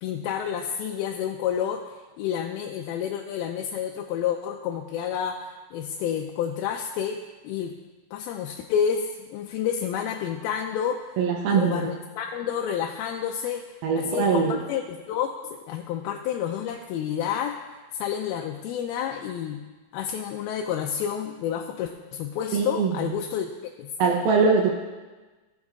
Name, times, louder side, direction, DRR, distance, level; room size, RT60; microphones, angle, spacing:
voice 1, 0.0-7.7 8.1-11.2 11.5-17.6 17.9-19.6 19.9-23.5 23.8-23.9, left 8 dB, 80° left, 2 dB, 2.3 m, -29 dB
voice 2, 11.2-11.9 13.8-14.6 22.5-22.9 24.0-24.7, right 5 dB, 75° right, 0 dB, 2.6 m, -22 dB
17.5 x 6.3 x 3.6 m, 1.3 s
omnidirectional pair, 4.7 m